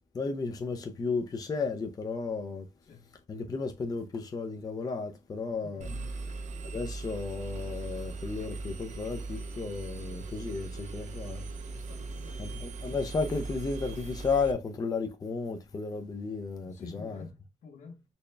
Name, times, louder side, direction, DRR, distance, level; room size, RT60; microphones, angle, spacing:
voice 1, 0.1-2.6 3.3-5.9 6.6-11.4 12.4-17.2, left 4 dB, 30° left, 0.5 m, -33 dB
voice 2, 5.6-6.1 11.6-12.8 16.7-18.0, left 5 dB, 75° left, 1.1 m, -49 dB
Engine, 5.8-14.5, right 3 dB, 80° right, 0.6 m, -39 dB
4.1 x 2.2 x 3.1 m
cardioid pair, 115°, 12 cm